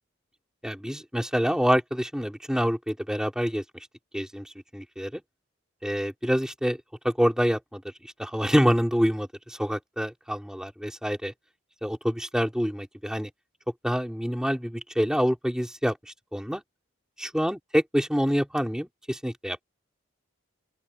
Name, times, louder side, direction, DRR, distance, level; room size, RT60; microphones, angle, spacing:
voice 1, 0.6-3.6 4.1-5.2 5.8-11.3 11.8-13.3 13.8-16.6 17.2-19.6, equal, 5° right, 4.4 m, -27 dB
open air
head